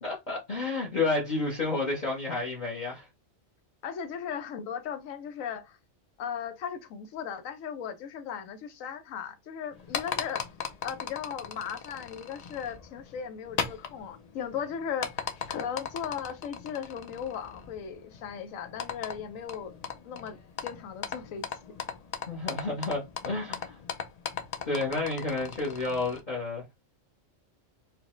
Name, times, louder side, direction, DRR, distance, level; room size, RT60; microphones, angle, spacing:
voice 1, 0.0-3.1 22.3-23.8 24.6-26.6, left 3 dB, 40° left, 0.9 m, -30 dB
voice 2, 3.8-5.8 6.2-10.4 10.8-19.8 20.0-20.4 20.6-21.7, left 7 dB, 85° left, 1.0 m, -37 dB
sound 1, 9.7-26.2, left 6 dB, 65° left, 0.4 m, -39 dB
4.7 x 2.1 x 3.0 m
omnidirectional pair, 1.3 m